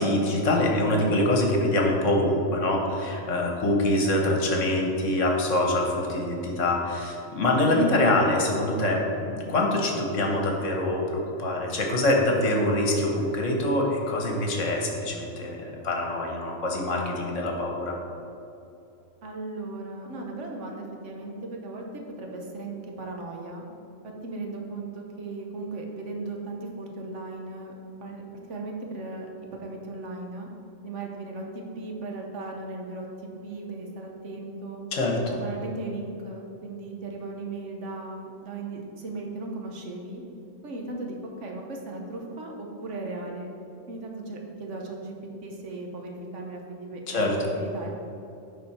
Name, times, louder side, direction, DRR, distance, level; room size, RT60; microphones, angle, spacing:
voice 1, 0.0-17.9 34.9-35.3 47.1-47.3, left 1 dB, 65° left, 1 dB, 1.4 m, -25 dB
voice 2, 19.2-21.8 22.2-23.6 24.2-27.7 28.0-28.2 28.5-29.3 29.6-30.5 30.8-33.0 33.4-34.8 35.3-40.2 40.6-41.2 41.4-43.5 43.9-45.1 45.4-47.9, right 2 dB, 65° right, 1 dB, 1.2 m, -37 dB
10.5 x 4.0 x 4.3 m, 2.7 s
omnidirectional pair, 1.4 m